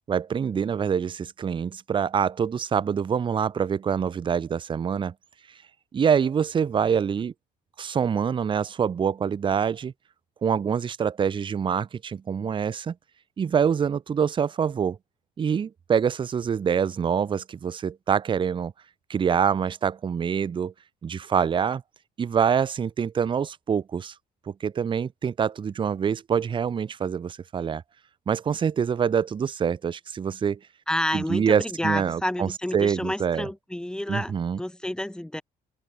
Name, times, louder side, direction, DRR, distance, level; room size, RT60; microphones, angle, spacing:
voice 1, 0.1-5.1 5.9-7.3 7.8-9.9 10.4-12.9 13.4-15.0 15.4-18.7 19.1-20.7 21.0-21.8 22.2-24.1 24.6-27.8 28.3-30.6 31.1-33.5 34.1-34.6, right 7 dB, 30° right, 0.6 m, -25 dB
voice 2, 30.9-35.4, left 1 dB, 5° left, 1.1 m, -30 dB
open air
cardioid pair, 110°, 17 cm